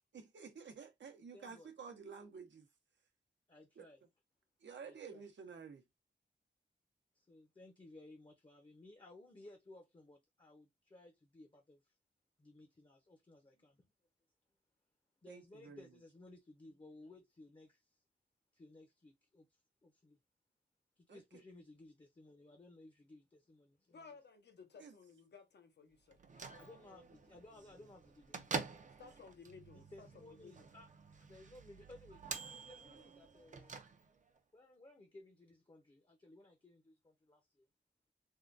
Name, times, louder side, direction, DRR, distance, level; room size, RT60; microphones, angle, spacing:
voice 1, 0.1-2.7 3.8-3.9 4.6-5.8 15.3-15.9 21.1-21.4 24.8-24.9, right 6 dB, 80° right, 0.7 m, -51 dB
voice 2, 1.1-1.7 3.5-4.0 4.8-5.2 7.1-11.9 12.4-13.9 15.2-18.0 18.5-20.2 21.0-24.1 26.6-29.0 29.7-30.9 31.3-33.8 34.5-37.7, left 2 dB, 25° left, 0.7 m, -59 dB
voice 3, 23.9-26.8 28.7-30.7, left 5 dB, 65° left, 0.7 m, -58 dB
Bell / Microwave oven, 26.1-34.4, right 4 dB, 45° right, 0.5 m, -48 dB
3.6 x 2.1 x 2.5 m
wide cardioid pair, 125°, 19 cm